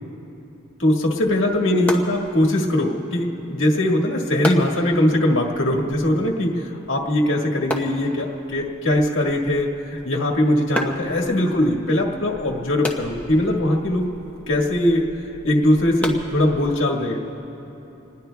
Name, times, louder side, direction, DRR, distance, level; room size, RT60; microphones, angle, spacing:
voice 1, 0.8-14.1 14.5-15.0 15.4-17.2, left 1 dB, 70° left, 0 dB, 1.7 m, -21 dB
sound 1, 1.5-17.0, left 1 dB, 5° left, 1.0 m, -35 dB
28.0 x 20.0 x 2.3 m, 3.0 s
head